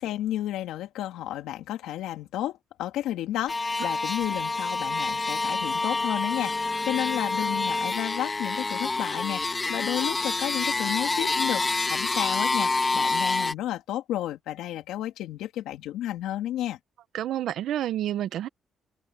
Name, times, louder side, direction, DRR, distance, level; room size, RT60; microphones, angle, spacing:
voice 1, 0.0-16.8, left 13 dB, 90° left, 2.7 m, -32 dB
sound 1, 3.5-13.5, left 3 dB, 25° left, 2.2 m, -27 dB
voice 2, 17.1-18.5, right 12 dB, 75° right, 1.0 m, -29 dB
cardioid pair, 90°, 0 cm